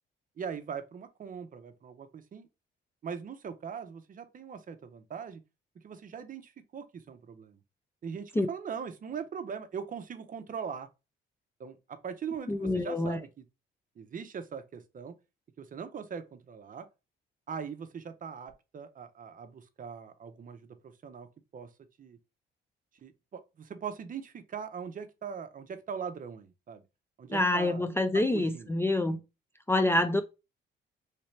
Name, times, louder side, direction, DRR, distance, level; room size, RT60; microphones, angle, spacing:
voice 1, 0.4-2.5 3.0-5.4 5.8-7.6 8.0-10.9 11.6-13.4 14.0-15.1 15.6-16.9 17.5-21.3 21.5-21.7 22.0-22.2 23.0-26.8 27.2-27.9 28.1-29.2 30.0-30.2, right 7 dB, 45° right, 0.6 m, -41 dB
voice 2, 12.5-13.2 27.3-29.2 29.7-30.2, left 2 dB, 10° left, 0.3 m, -27 dB
3.2 x 2.9 x 3.1 m
cardioid pair, 90°, 20 cm